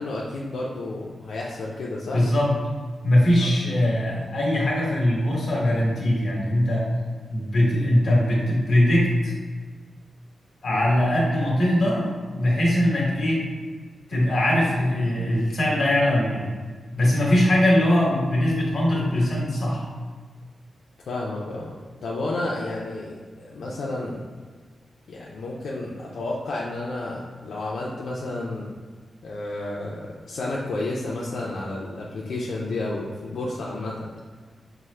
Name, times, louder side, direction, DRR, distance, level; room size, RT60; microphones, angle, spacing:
voice 1, 0.0-2.2 3.4-3.5 10.7-10.8 21.1-24.2 25.1-28.7 29.2-34.1, left 2 dB, 75° left, -4 dB, 0.4 m, -31 dB
voice 2, 2.1-2.5 3.0-6.8 7.3-9.3 10.6-13.4 14.1-16.5 17.0-19.8, left 1 dB, 40° left, -4 dB, 1.1 m, -21 dB
5.7 x 2.1 x 3.2 m, 1.5 s
wide cardioid pair, 165°, 0 cm